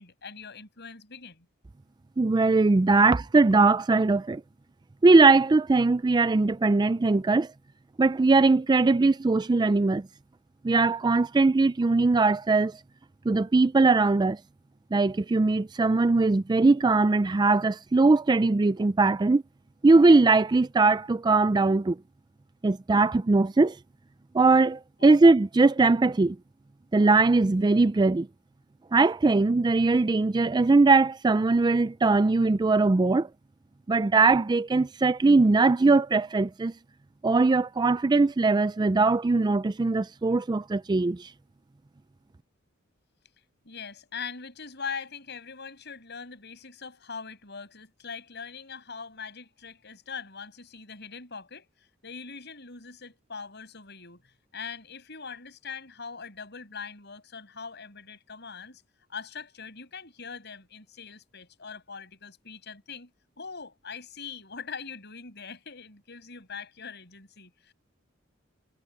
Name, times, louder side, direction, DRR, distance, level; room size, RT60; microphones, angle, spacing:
voice 1, 0.0-1.5 2.9-3.0 25.0-25.2 43.6-51.7 52.0-54.2 54.5-58.8 59.1-63.1 63.4-67.7, left 5 dB, 60° left, 7.3 m, -41 dB
voice 2, 2.2-4.4 5.0-7.5 8.0-10.1 10.6-12.8 13.3-14.4 14.9-19.4 19.8-22.0 22.6-23.8 24.3-26.4 26.9-28.3 28.9-33.3 33.9-36.7 37.2-41.3, right 3 dB, 20° right, 0.4 m, -21 dB
head